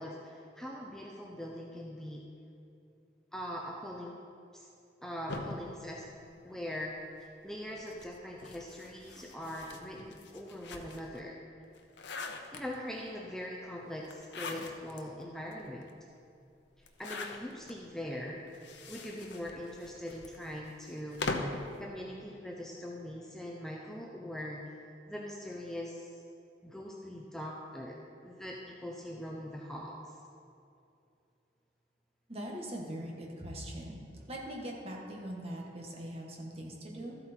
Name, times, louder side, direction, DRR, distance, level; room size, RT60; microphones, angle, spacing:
voice 1, 0.0-2.2 3.3-4.2 4.5-4.7 5.0-6.1 6.4-11.4 12.5-15.9 16.8-18.4 18.9-21.5 21.8-26.2 26.6-30.2, left 1 dB, 5° left, -2 dB, 0.7 m, -42 dB
sound 1, 5.3-6.9 7.7-11.2 11.6-13.0 14.0-15.0 15.5-15.6 15.8-15.9 16.8-17.7 18.5-21.7, left 3 dB, 80° left, 0.8 m, -42 dB
voice 2, 32.3-34.0 34.3-37.2, right 1 dB, 35° right, -1 dB, 1.6 m, -41 dB
13.5 x 7.9 x 4.4 m, 2.6 s
head